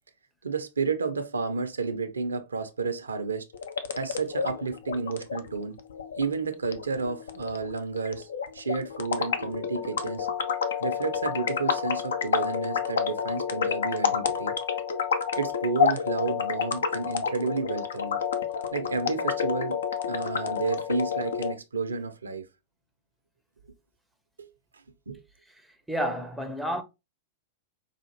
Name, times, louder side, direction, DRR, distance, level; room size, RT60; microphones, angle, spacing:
voice 1, 0.4-3.5 3.9-5.8 6.2-8.3 8.5-10.3 10.8-14.5 15.4-18.2 18.7-19.8 20.1-22.5 24.4-24.5 25.1-25.2, right 4 dB, 75° right, 0.5 m, -31 dB
sound 1, 3.5-21.5, left 7 dB, 65° left, 0.5 m, -29 dB
voice 2, 25.9-26.8, equal, ahead, 0.6 m, -30 dB
4.8 x 2.4 x 2.9 m
figure-of-eight pair, 100°, 0 cm